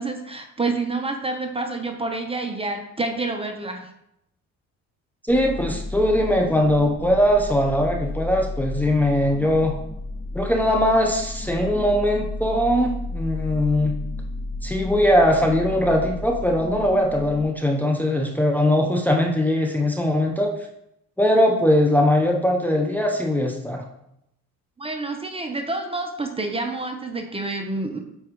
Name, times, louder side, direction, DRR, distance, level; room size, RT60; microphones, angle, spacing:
voice 1, 0.0-3.9 24.8-28.0, right 3 dB, 15° right, 4 dB, 1.0 m, -28 dB
sound 1, 5.3-17.4, left 2 dB, 40° left, 1.1 m, -33 dB
voice 2, 5.3-9.7 10.3-13.9 14.6-20.5 21.2-23.8, left 1 dB, 5° left, 1 dB, 0.9 m, -20 dB
8.8 x 4.7 x 3.1 m, 0.81 s
cardioid pair, 85°, 32 cm